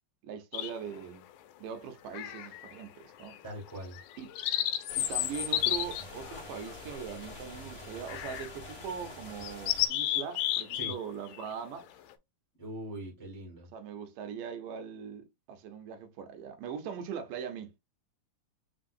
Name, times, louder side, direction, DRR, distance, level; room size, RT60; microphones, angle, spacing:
voice 1, 0.2-1.3 1.6-3.4 4.2-4.4 5.0-11.9 13.7-17.7, right 7 dB, 80° right, 2.5 m, -41 dB
sound 1, 0.5-1.0 2.1-2.8 3.2-3.4 3.9-7.4 8.1-8.5 8.9-9.0 9.4-11.0 11.3-11.5, left 13 dB, 80° left, 1.9 m, -32 dB
voice 2, 3.4-4.0 10.7-10.9 12.6-13.7, right 1 dB, 10° left, 0.9 m, -41 dB
sound 2, 4.9-9.9, left 1 dB, 35° left, 1.2 m, -46 dB
5.5 x 3.4 x 2.6 m
omnidirectional pair, 3.8 m